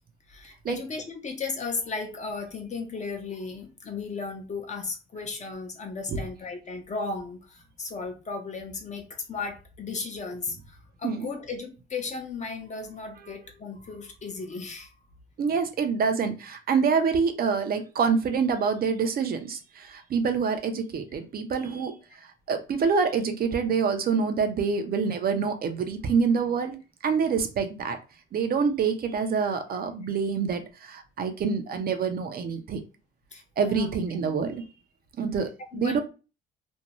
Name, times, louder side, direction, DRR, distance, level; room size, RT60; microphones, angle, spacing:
voice 1, 0.3-15.0 20.2-20.3 33.3-33.9 34.2-34.3 35.7-36.0, left 4 dB, 35° left, 4 dB, 0.7 m, -35 dB
voice 2, 15.4-22.0 22.5-28.0 28.3-32.8 33.6-34.6 35.2-36.0, right 5 dB, 50° right, 6 dB, 0.5 m, -26 dB
2.6 x 2.2 x 2.9 m, 0.31 s
cardioid pair, 100°, 20 cm